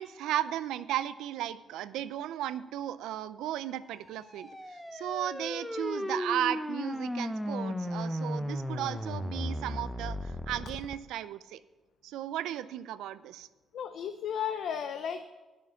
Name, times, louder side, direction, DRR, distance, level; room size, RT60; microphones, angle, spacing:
voice 1, 0.0-11.6 12.0-13.5, right 12 dB, 90° right, 15 dB, 0.4 m, -35 dB
sound 1, 4.0-11.0, left 1 dB, 5° left, 0.7 m, -35 dB
voice 2, 13.7-15.3, left 8 dB, 75° left, 8 dB, 0.6 m, -34 dB
10.5 x 6.5 x 7.3 m, 1.2 s
cardioid pair, 90°, 0 cm